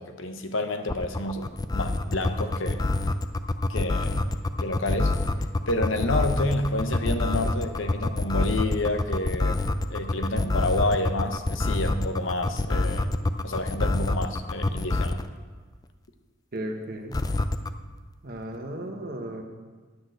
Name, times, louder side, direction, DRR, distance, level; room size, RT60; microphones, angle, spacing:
voice 1, 0.0-2.8 3.7-5.2 5.7-9.6 9.9-13.1 13.4-15.2, left 2 dB, 70° left, 7 dB, 0.9 m, -29 dB
sound 1, 0.9-15.3 17.1-17.7, left 2 dB, 20° left, 0.4 m, -26 dB
voice 2, 16.5-17.2 18.2-19.4, right 1 dB, 50° right, 3 dB, 1.3 m, -35 dB
9.8 x 6.4 x 7.9 m, 1.4 s
head